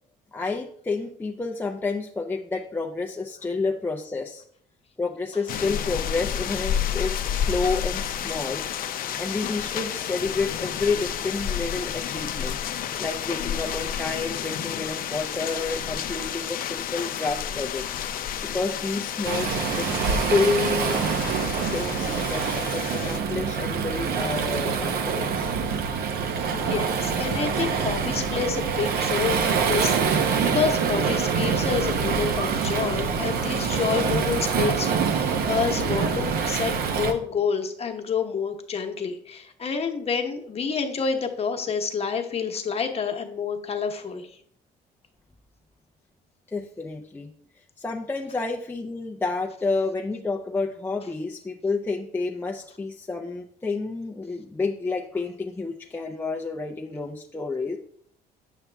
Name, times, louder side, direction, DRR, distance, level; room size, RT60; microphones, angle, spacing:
voice 1, 0.3-4.4 5.0-8.6 9.2-12.6 13.0-17.8 18.5-21.0 21.7-25.5 46.5-47.3 47.8-57.8, left 3 dB, 10° left, 1 dB, 0.5 m, -29 dB
sound 1, 5.5-23.2, left 9 dB, 60° left, 0.6 m, -31 dB
Waves surf, 19.2-37.1, right 6 dB, 65° right, 0.9 m, -25 dB
voice 2, 26.5-44.3, left 6 dB, 35° left, 5 dB, 1.1 m, -28 dB
8.3 x 5.8 x 3.4 m, 0.63 s
cardioid pair, 110°, 17 cm